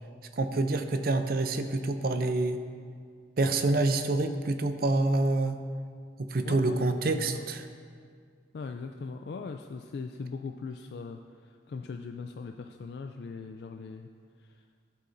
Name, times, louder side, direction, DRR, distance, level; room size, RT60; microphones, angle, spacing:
voice 1, 0.3-2.6 3.4-5.6 6.2-7.7, right 2 dB, 50° right, 8 dB, 0.5 m, -27 dB
voice 2, 6.4-6.8 7.3-7.4 8.5-14.1 14.4-14.7, left 4 dB, 60° left, 5 dB, 0.3 m, -40 dB
13.5 x 8.3 x 2.6 m, 2.1 s
head